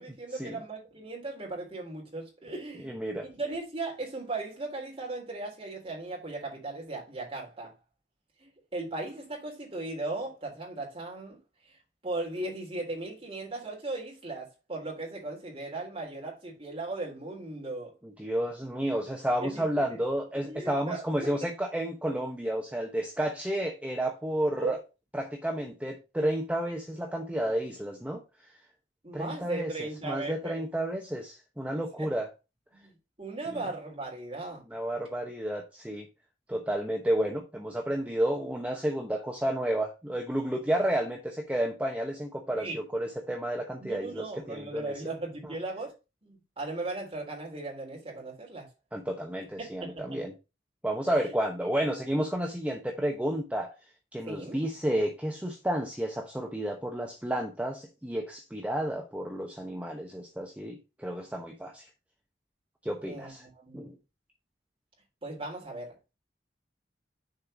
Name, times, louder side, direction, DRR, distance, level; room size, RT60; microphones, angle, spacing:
voice 1, 0.0-2.9 3.2-7.7 8.4-11.4 11.6-11.8 12.0-17.9 19.4-20.0 20.4-21.0 24.6-24.8 29.0-30.6 32.0-32.1 32.7-32.9 33.2-34.6 42.6-42.8 43.8-45.9 46.2-48.7 49.8-50.2 51.1-51.2 54.3-54.6 63.0-63.8 65.2-66.0, right 2 dB, 30° right, 3.5 m, -37 dB
voice 2, 2.8-3.2 18.2-24.8 25.1-28.2 29.1-32.3 33.5-33.6 34.7-36.1 36.5-44.9 48.9-50.3 50.8-53.7 54.1-61.9 62.8-63.4 63.7-63.9, right 1 dB, 10° right, 0.9 m, -31 dB
6.7 x 4.5 x 5.0 m
head